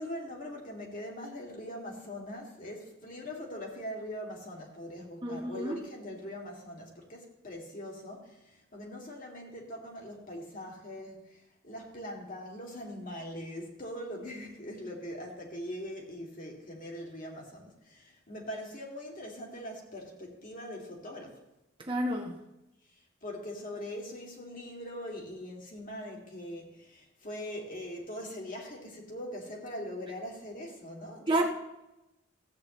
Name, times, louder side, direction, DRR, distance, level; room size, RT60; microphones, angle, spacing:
voice 1, 0.0-21.4 23.2-31.4, left 1 dB, 40° left, 0 dB, 2.3 m, -42 dB
voice 2, 5.2-5.8 21.9-22.3 31.3-31.4, right 1 dB, 25° right, 1 dB, 1.1 m, -29 dB
15.5 x 8.4 x 3.1 m, 0.94 s
head